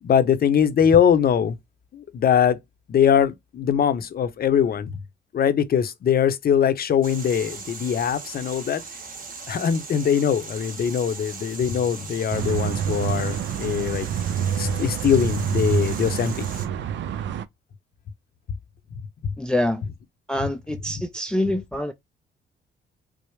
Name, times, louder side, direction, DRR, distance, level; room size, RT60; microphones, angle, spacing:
voice 1, 0.0-1.6 1.9-2.6 2.9-5.0 5.3-8.8 9.5-14.1 14.6-16.5 19.2-19.3, left 8 dB, 50° left, 0.7 m, -22 dB
sound 1, 7.0-16.7, right 4 dB, 45° right, 1.3 m, -39 dB
sound 2, 12.3-17.5, right 8 dB, 65° right, 0.5 m, -27 dB
voice 2, 19.4-19.8 20.3-21.9, left 1 dB, 5° left, 0.4 m, -25 dB
4.7 x 2.0 x 3.2 m
cardioid pair, 90°, 20 cm